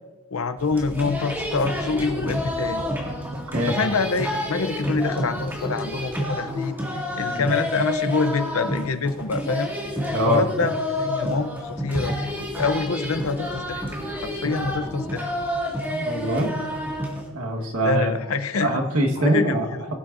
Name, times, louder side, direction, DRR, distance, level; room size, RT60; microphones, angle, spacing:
voice 1, 0.3-2.8 3.7-9.7 10.2-10.7 11.0-12.2 12.5-13.8 14.1-15.3 17.8-18.8 19.2-19.9, left 4 dB, 75° left, 11 dB, 0.7 m, -26 dB
sound 1, 0.6-17.3, equal, 10° right, 2.1 m, -29 dB
voice 2, 15.9-16.5 17.3-18.2 18.6-19.7, right 1 dB, 85° right, 2 dB, 1.5 m, -23 dB
20.5 x 8.7 x 2.6 m, 1.3 s
head